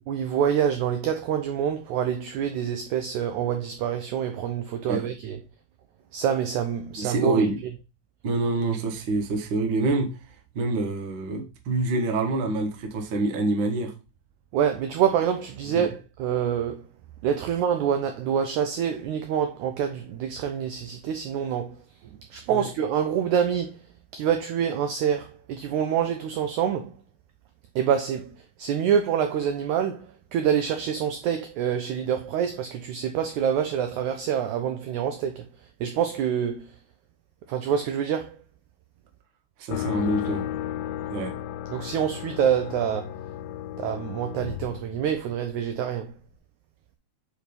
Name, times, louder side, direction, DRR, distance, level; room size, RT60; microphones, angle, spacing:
voice 1, 0.1-5.4 6.1-7.4 14.5-16.8 17.2-21.7 22.3-23.8 24.1-26.9 27.7-28.3 28.6-35.4 35.8-36.7 37.5-38.4 41.7-43.1 43.8-46.1, right 8 dB, 85° right, 1.7 m, -26 dB
voice 2, 7.0-7.6 8.2-10.1 10.5-13.9 15.7-15.9 22.5-22.7 39.6-40.5 41.1-41.3, right 2 dB, 65° right, 1.2 m, -26 dB
sound 1, 39.7-45.6, left 11 dB, 85° left, 2.4 m, -34 dB
5.8 x 4.9 x 5.2 m
omnidirectional pair, 4.2 m